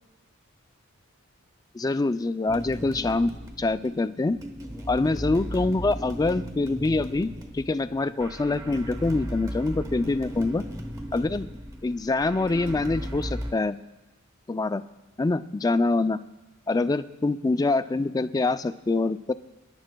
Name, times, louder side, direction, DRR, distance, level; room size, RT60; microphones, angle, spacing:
voice 1, 1.7-3.3 3.6-4.4 4.9-10.6 11.1-11.5 11.8-13.8 14.5-14.8 15.2-16.2 16.7-19.3, left 3 dB, 20° left, 12 dB, 0.3 m, -25 dB
sound 1, 2.5-13.5, equal, 20° right, 1.1 m, -36 dB
25.5 x 11.5 x 2.3 m, 1.0 s
head